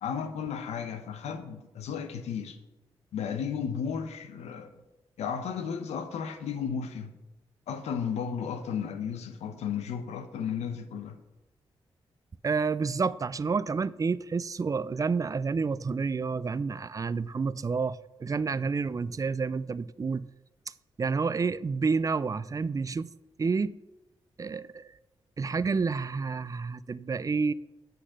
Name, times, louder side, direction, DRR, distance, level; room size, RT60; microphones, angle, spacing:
voice 1, 0.0-2.6 3.1-4.7 5.2-7.1 7.7-11.1, left 7 dB, 85° left, 0.7 m, -34 dB
voice 2, 12.4-20.3 21.0-23.1 23.4-23.7 24.4-25.0 25.4-27.5, right 4 dB, 30° right, 0.4 m, -29 dB
8.4 x 3.9 x 6.5 m
supercardioid pair, 50°, 11 cm